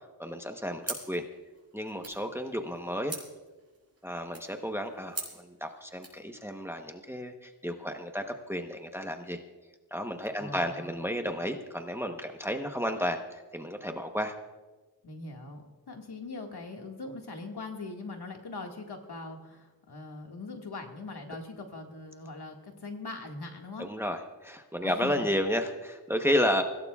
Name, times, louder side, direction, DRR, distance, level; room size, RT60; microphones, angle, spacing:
voice 1, 0.2-1.2 1.7-3.2 4.0-9.4 9.9-14.3 23.8-26.6, equal, 5° right, 5 dB, 1.0 m, -32 dB
sound 1, 0.8-6.2, right 3 dB, 40° right, 5.6 m, -44 dB
voice 2, 10.4-10.9 15.0-15.6 15.9-23.9 24.8-25.3, left 3 dB, 70° left, 2 dB, 2.0 m, -41 dB
24.0 x 16.5 x 2.4 m, 1.3 s
wide cardioid pair, 75°, 40 cm